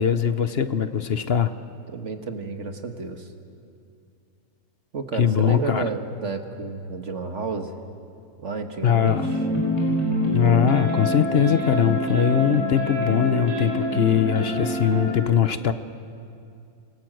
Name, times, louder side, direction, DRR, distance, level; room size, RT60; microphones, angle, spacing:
voice 1, 0.0-1.5 5.2-5.8 8.8-9.3 10.3-15.7, left 8 dB, 50° left, 11 dB, 0.9 m, -21 dB
voice 2, 1.9-3.3 4.9-7.8 8.4-9.5, right 4 dB, 50° right, 6 dB, 1.8 m, -31 dB
sound 1, 9.0-15.1, equal, 20° left, 6.5 m, -26 dB
27.5 x 19.5 x 7.8 m, 2.5 s
omnidirectional pair, 1.6 m